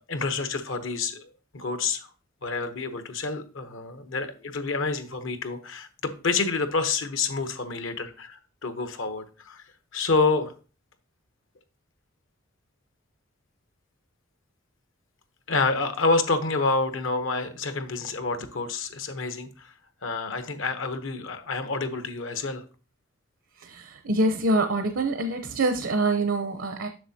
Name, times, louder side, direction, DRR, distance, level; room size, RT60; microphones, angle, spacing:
voice 1, 0.0-2.1 2.4-9.6 9.9-10.5 15.5-19.7 20.0-22.6, left 3 dB, 70° left, 10 dB, 0.9 m, -28 dB
voice 2, 23.6-26.9, right 2 dB, 75° right, 7 dB, 0.7 m, -25 dB
7.8 x 6.4 x 2.7 m, 0.36 s
head